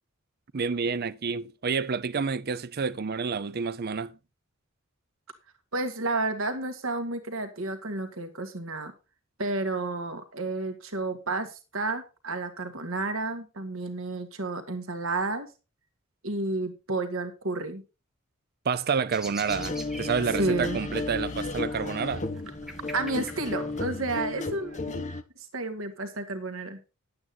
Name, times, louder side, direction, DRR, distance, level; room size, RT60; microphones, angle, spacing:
voice 1, 0.5-4.2 18.6-22.3, right 5 dB, 50° right, 0.5 m, -29 dB
voice 2, 5.7-8.9 9.4-15.5 16.2-17.8 20.3-20.8 22.9-25.0 25.4-26.8, right 2 dB, 75° right, 1.8 m, -31 dB
sound 1, 19.1-24.3, right 1 dB, ahead, 1.5 m, -45 dB
sound 2, 19.5-25.2, left 2 dB, 35° left, 1.0 m, -34 dB
11.0 x 8.6 x 4.2 m
head